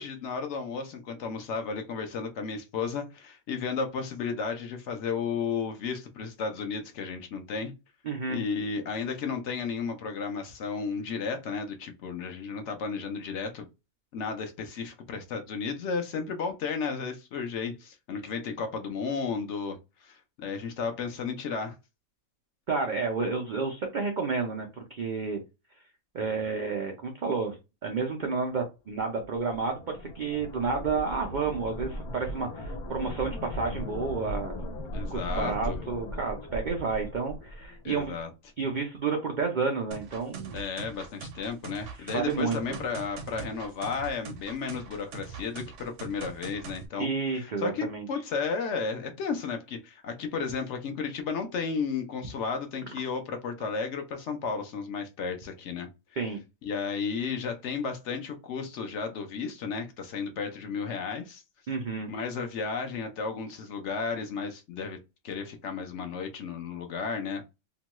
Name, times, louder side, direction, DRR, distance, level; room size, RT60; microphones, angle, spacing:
voice 1, 0.0-7.7 8.3-13.7 14.1-21.8 34.9-35.8 37.8-38.3 40.5-55.9 56.6-61.4 62.1-65.0 65.2-67.4, left 5 dB, 65° left, 0.8 m, -33 dB
voice 2, 8.0-8.4 22.7-25.4 26.1-34.7 35.1-38.1 38.6-40.6 42.0-42.8 47.0-48.1 56.2-56.4 61.7-62.1, right 4 dB, 85° right, 0.4 m, -31 dB
sound 1, 29.0-38.2, equal, 85° left, 1.1 m, -38 dB
sound 2, 39.9-46.9, right 4 dB, 65° right, 0.9 m, -42 dB
2.9 x 2.2 x 2.9 m
omnidirectional pair, 1.5 m